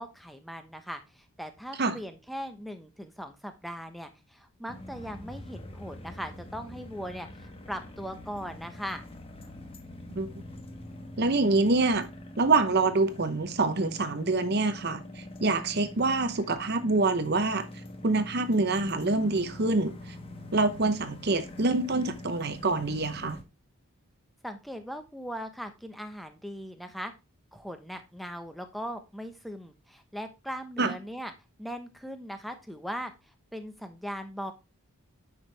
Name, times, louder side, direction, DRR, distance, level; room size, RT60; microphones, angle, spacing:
voice 1, 0.0-9.0 24.4-27.1 27.5-31.3 31.6-33.1 33.5-34.5, equal, ahead, 1.0 m, -39 dB
sound 1, 4.7-23.4, left 1 dB, 25° left, 1.1 m, -44 dB
voice 2, 11.2-12.1 12.4-17.7 18.0-19.9 20.5-23.4 30.8-30.9, right 3 dB, 45° right, 0.8 m, -26 dB
9.5 x 6.3 x 3.4 m
head